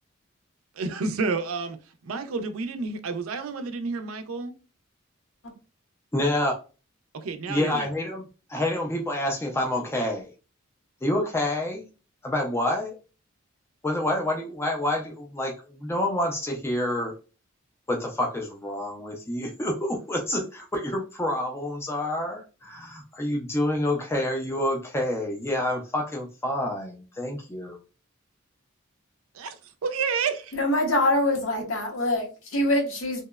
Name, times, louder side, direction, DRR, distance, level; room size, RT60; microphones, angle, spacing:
voice 1, 0.8-1.8 2.0-4.5 7.1-7.9 29.3-29.6 29.8-30.5, right 4 dB, 85° right, 0.4 m, -30 dB
voice 2, 6.1-6.5 7.5-8.2 8.5-10.3 11.0-11.9 12.2-12.9 13.8-17.1 17.9-27.8, left 1 dB, 10° left, 0.3 m, -28 dB
voice 3, 30.5-33.2, left 1 dB, 70° left, 0.7 m, -24 dB
2.8 x 2.0 x 2.2 m
head